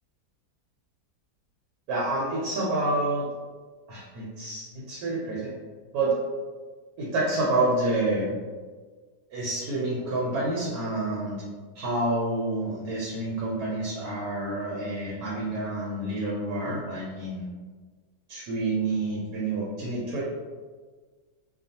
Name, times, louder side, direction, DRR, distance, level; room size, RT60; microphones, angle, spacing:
voice 1, 1.9-3.3 3.9-5.5 5.9-6.1 7.0-8.3 9.3-11.4 11.7-17.5 18.3-20.2, right 2 dB, 80° right, -5 dB, 1.1 m, -28 dB
2.4 x 2.4 x 2.7 m, 1.5 s
omnidirectional pair, 1.6 m